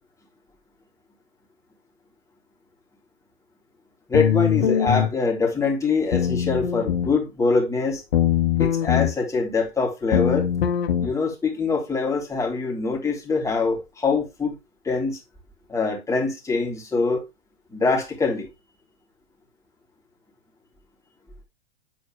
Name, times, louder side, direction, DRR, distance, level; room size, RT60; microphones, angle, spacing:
sound 1, 4.1-5.1 6.1-7.1 8.1-9.1 10.1-11.1, left 10 dB, 75° left, 1.6 m, -22 dB
voice 1, 4.1-8.0 8.6-10.5 11.0-14.5 14.8-15.2 15.7-17.2 17.7-18.5, left 4 dB, 10° left, 3.1 m, -24 dB
8.7 x 4.5 x 3.4 m
hypercardioid pair, 115°, 30 cm